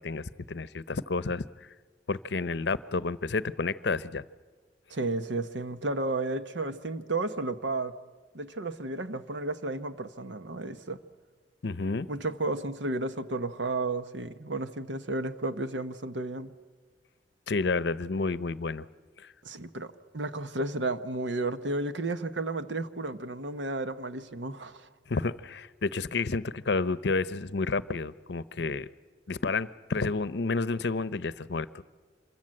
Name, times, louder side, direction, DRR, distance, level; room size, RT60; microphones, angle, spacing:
voice 1, 0.0-1.5 2.1-4.2 11.6-12.1 17.5-18.8 19.2-19.3 25.1-28.9 29.3-31.8, left 3 dB, 65° left, 0.7 m, -30 dB
voice 2, 4.9-8.0 8.3-11.0 12.1-16.5 19.4-24.9, right 2 dB, 80° right, 1.1 m, -33 dB
26.5 x 22.5 x 7.6 m
head